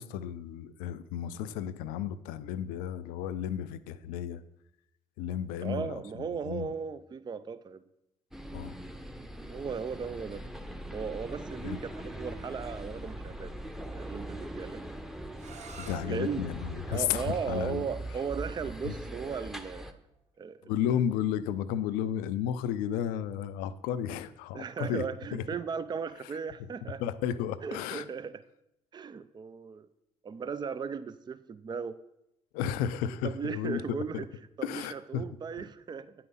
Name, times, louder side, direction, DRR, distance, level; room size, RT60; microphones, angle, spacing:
voice 1, 0.0-4.4 5.2-6.7 8.5-8.8 11.6-11.8 15.8-17.9 18.8-18.9 20.6-25.0 25.3-25.4 27.0-28.1 32.5-34.2 34.6-35.2, left 9 dB, 75° left, 0.5 m, -33 dB
voice 2, 5.6-7.8 9.5-10.5 10.9-13.5 13.9-14.8 16.1-16.5 16.9-20.0 20.4-20.7 24.5-27.0 27.6-28.4 28.9-29.9 30.2-32.0 33.2-34.3 34.6-36.1, right 6 dB, 30° right, 0.4 m, -36 dB
sound 1, 8.3-19.9, right 1 dB, 5° right, 0.8 m, -41 dB
sound 2, 15.3-21.1, right 6 dB, 50° right, 1.1 m, -53 dB
9.3 x 5.7 x 4.0 m
hypercardioid pair, 50°, 15 cm